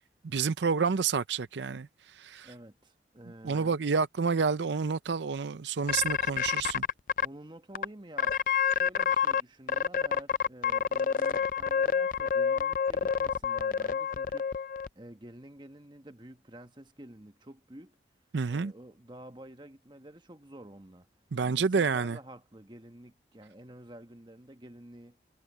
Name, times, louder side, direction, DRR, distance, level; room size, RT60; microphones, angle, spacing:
voice 1, 0.2-2.5 3.4-6.8 18.3-18.7 21.3-22.2, right 5 dB, 80° right, 0.6 m, -29 dB
voice 2, 2.4-3.8 7.2-14.6 14.9-18.0 18.5-21.1 21.4-25.2, right 1 dB, 25° right, 1.3 m, -49 dB
sound 1, 5.9-7.3 7.7-7.8 8.2-9.4 9.7-14.9, left 7 dB, 45° left, 0.4 m, -28 dB
head